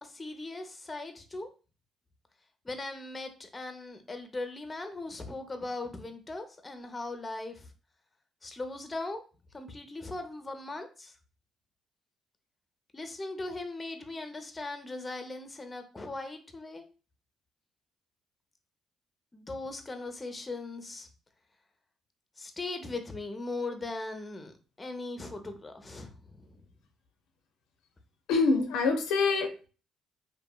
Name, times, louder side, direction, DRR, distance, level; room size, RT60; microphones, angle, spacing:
voice 1, 0.0-1.5 2.6-7.7 8.4-9.2 9.5-11.1 12.9-16.9 19.3-21.1 22.4-26.6, left 2 dB, 25° left, 7 dB, 0.5 m, -39 dB
voice 2, 28.3-29.7, left 4 dB, 85° left, 5 dB, 0.4 m, -25 dB
2.7 x 2.5 x 2.2 m, 0.35 s
supercardioid pair, 70°, 0 cm